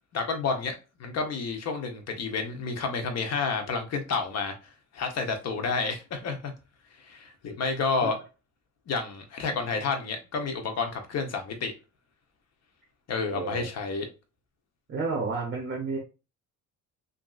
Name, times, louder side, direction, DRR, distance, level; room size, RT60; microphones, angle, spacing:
voice 1, 0.1-0.7 1.0-4.5 4.9-6.5 7.0-8.2 8.9-11.7 13.1-14.1, left 4 dB, 50° left, 0.8 m, -30 dB
voice 2, 13.3-13.7 14.9-16.0, right 4 dB, 35° right, 0.9 m, -31 dB
3.0 x 2.6 x 2.4 m
cardioid pair, 125°, 33 cm